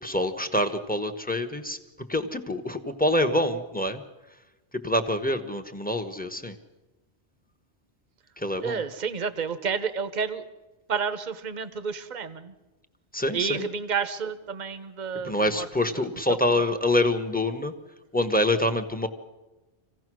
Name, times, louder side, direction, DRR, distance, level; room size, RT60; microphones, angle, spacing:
voice 1, 0.0-1.8 2.1-4.0 4.8-6.6 8.4-8.8 13.1-13.7 15.2-17.7 18.1-19.1, left 1 dB, 10° left, 8 dB, 1.1 m, -26 dB
voice 2, 8.6-10.4 10.9-12.5 13.3-16.7, right 6 dB, 45° right, 11 dB, 1.1 m, -31 dB
26.5 x 16.5 x 6.2 m, 1.1 s
omnidirectional pair, 1.2 m